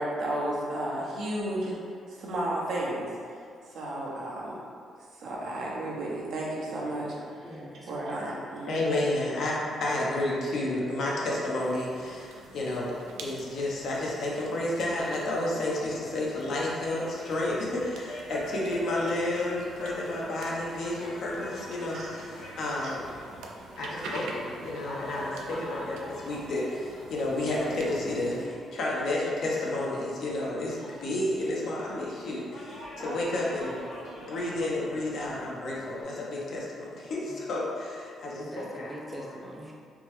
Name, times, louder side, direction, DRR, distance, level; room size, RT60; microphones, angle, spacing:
voice 1, 0.0-1.8 2.1-3.1 3.7-4.6 5.1-7.1 7.9-9.0 21.9-22.1 22.8-22.9, right 1 dB, 70° right, -5 dB, 0.8 m, -33 dB
voice 2, 7.4-8.2 37.3-37.4 38.4-39.7, right 1 dB, 15° right, -3 dB, 0.6 m, -42 dB
voice 3, 8.7-12.9 13.2-23.0 23.8-33.8 34.2-39.2, left 1 dB, 65° left, -4 dB, 0.7 m, -31 dB
sound 1, 11.6-28.5, right 3 dB, 90° right, 0.3 m, -47 dB
sound 2, 16.8-36.0, equal, 85° left, 1.4 m, -45 dB
3.5 x 2.1 x 3.1 m, 2.3 s
cardioid pair, 90°, 0 cm